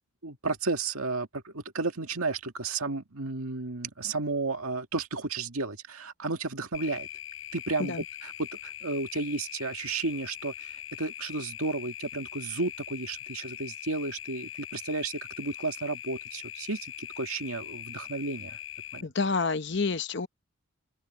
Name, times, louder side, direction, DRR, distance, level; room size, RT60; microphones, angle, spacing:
voice 1, 0.2-7.1 7.5-8.0 8.2-18.6 18.9-19.1, right 3 dB, 85° right, 2.0 m, -33 dB
sound 1, 6.7-19.0, left 11 dB, 75° left, 5.0 m, -42 dB
voice 2, 19.0-20.3, left 4 dB, 55° left, 0.8 m, -28 dB
head